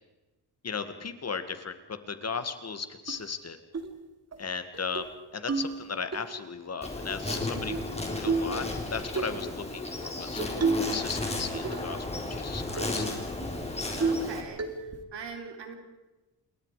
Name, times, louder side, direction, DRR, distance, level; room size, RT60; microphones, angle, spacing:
voice 1, 0.6-3.6 4.4-8.6 8.9-10.4 10.8-13.1, left 5 dB, 40° left, 10 dB, 1.9 m, -36 dB
sound 1, 3.1-3.2 3.7-3.9 4.3-4.4 4.7-5.1 5.5-6.2 7.3-7.9 8.3-8.6 9.1-9.4 10.4-11.0 11.3-12.0 12.3-12.4 12.8-13.0 13.4-13.5 14.0-14.3 14.6-15.0, right 4 dB, 40° right, 2.6 m, -30 dB
Insect, 6.8-14.4, left 2 dB, 15° left, 4.1 m, -34 dB
voice 2, 14.0-14.8 15.1-15.7, right 6 dB, 85° right, 4 dB, 4.0 m, -41 dB
28.0 x 22.5 x 5.0 m, 1.1 s
wide cardioid pair, 145°, 41 cm